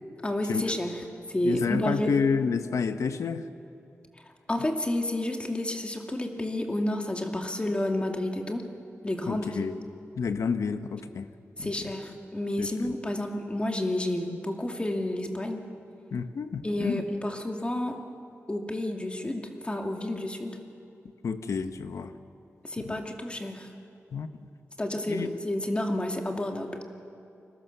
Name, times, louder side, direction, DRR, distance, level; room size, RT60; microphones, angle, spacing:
voice 1, 0.2-2.2 4.5-8.7 9.0-9.7 11.6-15.6 16.6-18.0 18.5-20.6 22.6-23.7 24.8-26.8, left 1 dB, 20° left, 3 dB, 2.5 m, -30 dB
voice 2, 1.4-3.4 9.3-9.8 10.2-11.3 11.6-11.7 12.6-12.7 16.1-17.0 21.2-22.1 22.9-23.0 24.1-24.3 25.1-25.3, left 5 dB, 85° left, 9 dB, 1.1 m, -29 dB
29.5 x 21.5 x 6.9 m, 2.6 s
wide cardioid pair, 95°, 5 cm